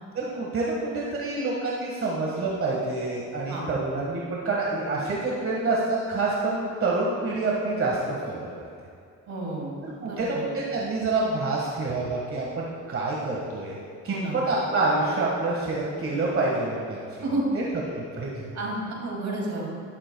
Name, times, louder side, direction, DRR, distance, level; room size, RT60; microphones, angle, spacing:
voice 1, 0.1-8.6 9.8-13.8 14.0-17.0 17.5-17.6 17.9-18.5, right 3 dB, 45° right, -4 dB, 1.6 m, -27 dB
voice 2, 9.3-10.4 14.1-14.4 17.2-17.5 18.5-19.7, right 2 dB, 65° right, -2 dB, 2.5 m, -31 dB
12.0 x 11.0 x 2.3 m, 2.3 s
cardioid pair, 90°, 30 cm